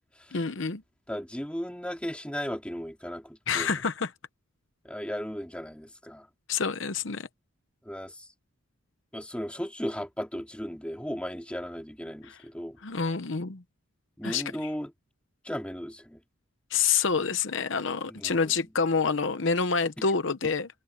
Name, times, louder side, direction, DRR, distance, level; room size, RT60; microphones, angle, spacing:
voice 1, 0.3-0.8 3.5-4.1 6.5-7.3 12.2-12.4 12.8-13.6 14.2-14.7 16.7-20.7, left 5 dB, 65° left, 0.9 m, -27 dB
voice 2, 1.1-3.8 4.8-6.3 7.9-8.3 9.1-12.8 14.2-14.9 15.4-16.2 18.1-18.5 20.0-20.1, equal, 5° left, 2.4 m, -36 dB
head